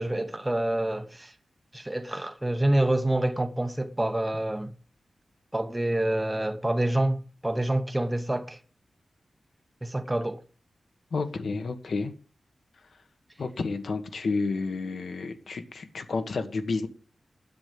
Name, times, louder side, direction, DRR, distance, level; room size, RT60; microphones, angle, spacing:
voice 1, 0.0-1.3 1.7-4.7 5.5-8.6 9.8-10.4, right 1 dB, 10° right, 0.9 m, -27 dB
voice 2, 11.1-12.1 13.4-16.9, left 4 dB, 60° left, 1.6 m, -30 dB
10.5 x 8.2 x 7.7 m
wide cardioid pair, 170°, 0 cm